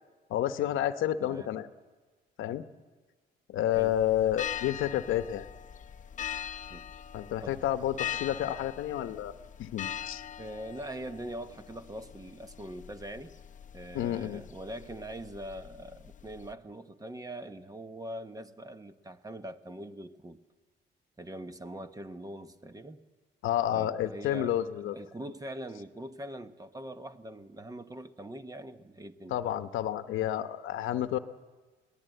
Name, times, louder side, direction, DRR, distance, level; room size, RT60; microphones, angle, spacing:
voice 1, 0.3-1.7 2.4-2.6 3.5-5.4 7.1-9.3 9.6-10.2 13.9-14.4 23.4-24.9 29.3-31.2, left 12 dB, 85° left, 11 dB, 0.9 m, -30 dB
voice 2, 1.2-1.5 3.7-3.9 6.7-6.9 7.4-7.6 10.4-13.3 13.7-20.4 21.2-23.0 23.7-29.4, right 1 dB, 20° right, 10 dB, 1.0 m, -42 dB
sound 1, 3.7-16.5, left 10 dB, 40° left, 0.7 m, -42 dB
22.0 x 18.5 x 7.9 m, 1.4 s
cardioid pair, 90°, 20 cm